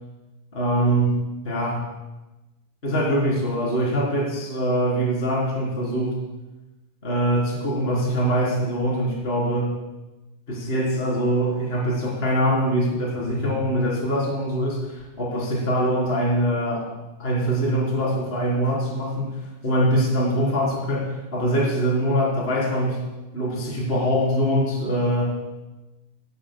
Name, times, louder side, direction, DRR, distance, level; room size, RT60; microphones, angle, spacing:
voice 1, 0.5-1.2 1.4-1.8 2.8-6.2 7.0-9.7 10.5-16.9 17.2-23.0 23.3-25.4, equal, 15° left, -4 dB, 3.6 m, -23 dB
22.5 x 18.0 x 2.3 m, 1.1 s
omnidirectional pair, 5.2 m